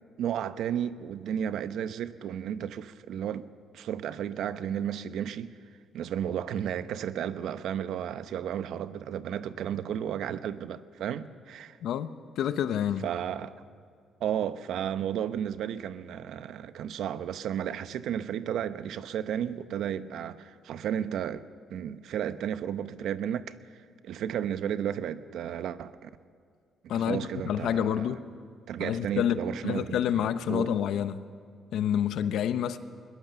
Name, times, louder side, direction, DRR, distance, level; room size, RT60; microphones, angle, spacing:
voice 1, 0.2-3.5 3.7-5.5 5.9-11.8 13.0-13.5 14.2-21.4 21.7-23.5 24.0-26.1 26.9-28.1 28.7-30.7, right 9 dB, 80° right, 0.8 m, -33 dB
voice 2, 12.4-13.1 26.9-28.2 28.8-31.2 31.7-32.8, left 9 dB, 80° left, 0.9 m, -28 dB
21.0 x 20.5 x 6.9 m
cardioid pair, 90°, 0 cm